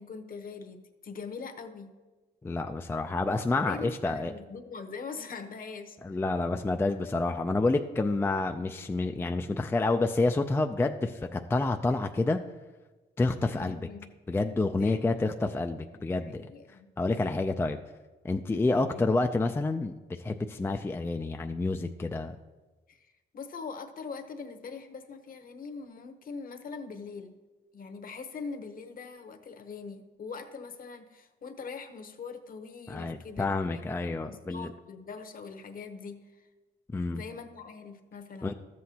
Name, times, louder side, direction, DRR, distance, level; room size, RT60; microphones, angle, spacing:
voice 1, 0.0-1.9 3.6-6.0 13.5-14.1 14.7-15.0 16.2-16.9 18.7-19.1 22.9-27.4 27.7-33.9 34.2-36.5 37.1-38.5, left 5 dB, 45° left, 7 dB, 0.9 m, -42 dB
voice 2, 2.4-4.3 6.0-12.4 13.2-13.9 14.3-16.5 17.0-17.8 18.2-22.4 32.9-34.7 36.9-37.2 38.4-38.5, left 3 dB, 10° left, 5 dB, 0.3 m, -28 dB
13.0 x 7.7 x 2.8 m, 1.2 s
cardioid pair, 90°, 20 cm